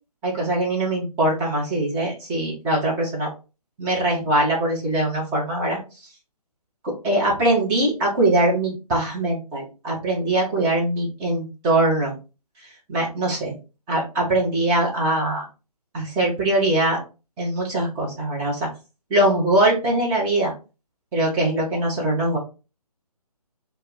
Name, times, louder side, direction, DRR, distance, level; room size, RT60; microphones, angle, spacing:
voice 1, 0.2-3.3 3.8-5.8 6.8-12.1 12.9-13.5 13.9-15.4 15.9-17.0 17.4-18.6 19.1-20.5 21.1-22.4, right 1 dB, 10° right, -3 dB, 0.5 m, -22 dB
2.1 x 2.0 x 3.6 m, 0.31 s
figure-of-eight pair, 145°, 20 cm